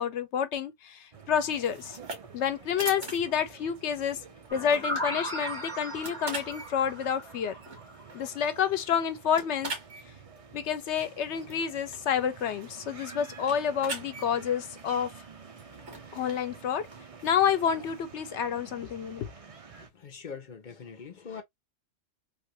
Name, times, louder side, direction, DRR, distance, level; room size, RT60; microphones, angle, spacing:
voice 1, 0.0-2.0 2.3-4.2 4.5-7.6 8.1-9.7 10.5-15.1 16.1-16.9 17.2-19.3, left 8 dB, 80° left, 0.9 m, -29 dB
sound 1, 1.1-19.9, right 5 dB, 40° right, 0.6 m, -50 dB
sound 2, 1.5-18.0, right 3 dB, 80° right, 1.7 m, -44 dB
sound 3, 4.5-8.3, equal, 5° left, 1.1 m, -37 dB
voice 2, 19.8-21.4, left 6 dB, 45° left, 0.9 m, -43 dB
3.3 x 2.5 x 2.9 m
omnidirectional pair, 1.2 m